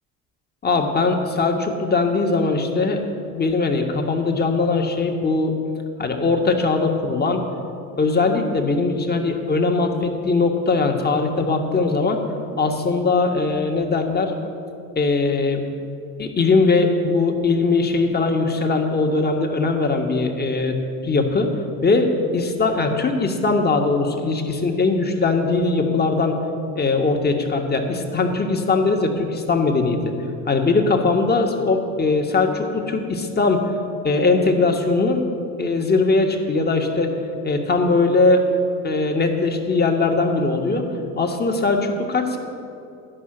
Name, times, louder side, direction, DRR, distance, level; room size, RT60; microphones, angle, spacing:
voice 1, 0.6-3.0 3.3-5.6 6.0-7.4 8.0-12.2 12.6-14.3 14.9-15.6 16.2-20.8 21.0-21.5 21.8-26.4 26.7-30.1 30.5-33.7 34.0-35.2 35.6-37.2 37.4-38.4 38.8-40.8 41.2-42.4, left 3 dB, 20° left, 3 dB, 1.4 m, -20 dB
11.5 x 5.5 x 7.7 m, 2.6 s
hypercardioid pair, 75°, 44 cm